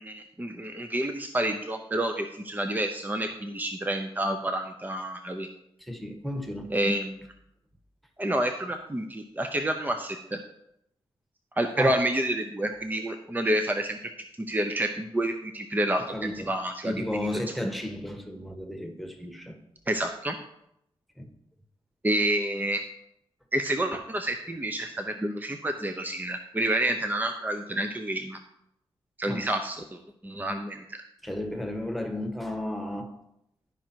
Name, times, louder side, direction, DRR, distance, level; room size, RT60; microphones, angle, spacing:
voice 1, 0.0-5.5 6.7-7.2 8.2-10.4 11.6-14.1 14.5-17.3 19.9-20.4 22.0-22.8 23.5-28.4 29.2-31.0, right 1 dB, 15° right, 6 dB, 0.7 m, -29 dB
voice 2, 5.8-6.7 11.8-12.0 16.1-16.5 16.8-19.6 21.2-21.3 29.3-29.5 31.2-33.1, left 1 dB, ahead, 4 dB, 1.4 m, -33 dB
11.5 x 5.1 x 4.5 m, 0.80 s
cardioid pair, 65°, 11 cm